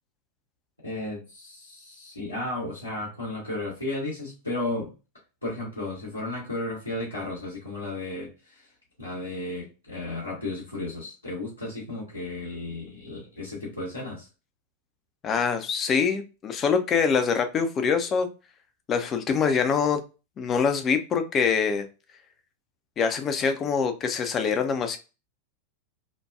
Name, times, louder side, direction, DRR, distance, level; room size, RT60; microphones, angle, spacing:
voice 1, 0.8-4.9 5.4-8.6 9.0-14.3, left 2 dB, 85° left, -7 dB, 1.0 m, -34 dB
voice 2, 15.2-18.3 18.9-20.0 20.4-21.8 23.0-25.0, left 6 dB, 25° left, 7 dB, 0.4 m, -24 dB
2.8 x 2.2 x 2.2 m, 0.30 s
figure-of-eight pair, 90°, 0 cm